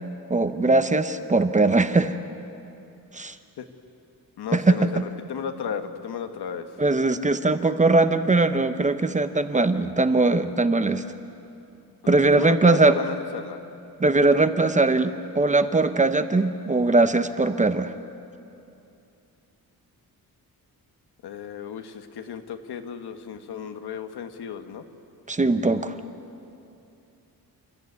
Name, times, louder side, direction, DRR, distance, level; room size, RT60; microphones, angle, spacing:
voice 1, 0.3-2.2 3.1-3.3 4.5-4.9 6.8-11.0 12.1-13.0 14.0-17.9 25.3-25.9, right 2 dB, 20° right, 10 dB, 0.7 m, -20 dB
voice 2, 4.4-6.7 12.0-13.6 21.2-24.8, left 7 dB, 90° left, 7 dB, 1.4 m, -34 dB
29.0 x 13.5 x 9.6 m, 2.7 s
wide cardioid pair, 150°, 38 cm